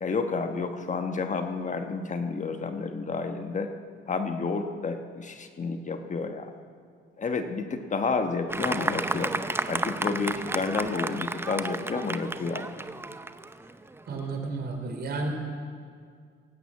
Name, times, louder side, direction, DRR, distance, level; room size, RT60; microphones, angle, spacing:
voice 1, 0.0-3.7 4.1-6.5 7.2-9.3 9.7-12.7, left 4 dB, 40° left, 7 dB, 1.2 m, -30 dB
Fireworks, 8.5-14.2, right 2 dB, 10° right, 0.6 m, -32 dB
voice 2, 14.1-15.3, right 3 dB, 55° right, 4 dB, 3.2 m, -32 dB
18.0 x 9.1 x 8.4 m, 2.1 s
cardioid pair, 90°, 20 cm